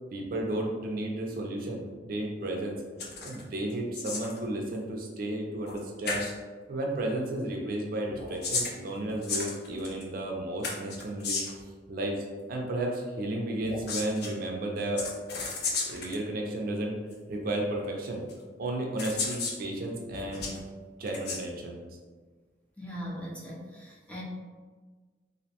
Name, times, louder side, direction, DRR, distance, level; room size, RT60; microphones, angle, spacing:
voice 1, 0.1-2.8 3.2-6.3 6.7-11.4 11.9-15.1 15.9-17.0 17.3-18.2 18.6-20.6 21.0-21.8, right 1 dB, 55° right, 0 dB, 0.4 m, -33 dB
sound 1, 3.0-3.4 3.7-4.4 5.7-5.8 6.1-6.3 8.1-10.0 10.6-11.7 13.6-14.3 15.0-16.2 17.1-17.2 18.3-18.4 19.0-19.6 20.1-20.6 21.1-21.4, left 4 dB, 65° left, 0.4 m, -34 dB
voice 2, 22.8-24.2, equal, 10° left, -5 dB, 0.5 m, -40 dB
2.6 x 2.1 x 2.8 m, 1.4 s
head